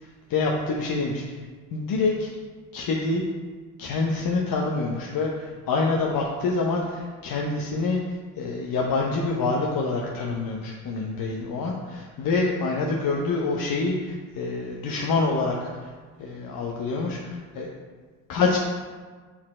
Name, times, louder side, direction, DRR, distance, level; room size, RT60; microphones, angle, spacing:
voice 1, 0.3-1.2 1.7-2.3 2.7-3.2 3.8-8.0 8.4-15.9 16.2-17.7 18.3-18.6, left 3 dB, 55° left, -1 dB, 1.0 m, -26 dB
7.4 x 4.4 x 4.3 m, 1.5 s
supercardioid pair, 65°, 40 cm